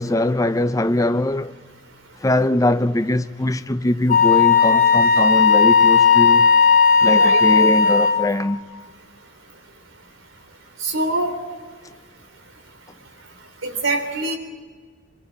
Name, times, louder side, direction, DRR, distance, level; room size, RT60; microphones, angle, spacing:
voice 1, 0.0-1.5 2.2-6.5 7.0-8.6, left 1 dB, 15° left, 0.6 m, -21 dB
Wind instrument woodwind instrument, 4.1-8.3, left 5 dB, 40° left, 2.1 m, -15 dB
voice 2, 7.1-7.7 10.8-11.4 13.6-14.4, right 2 dB, 80° right, 3.4 m, -24 dB
24.0 x 22.0 x 8.6 m
head